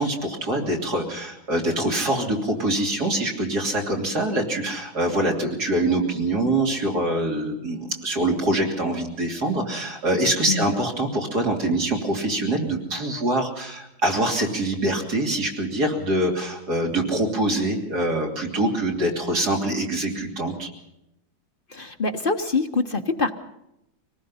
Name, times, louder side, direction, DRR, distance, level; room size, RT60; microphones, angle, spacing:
voice 1, 0.0-20.7, right 1 dB, 50° right, 0 dB, 3.6 m, -24 dB
voice 2, 21.7-23.3, left 3 dB, 40° left, 5 dB, 0.9 m, -24 dB
25.0 x 19.0 x 5.6 m, 0.84 s
omnidirectional pair, 2.1 m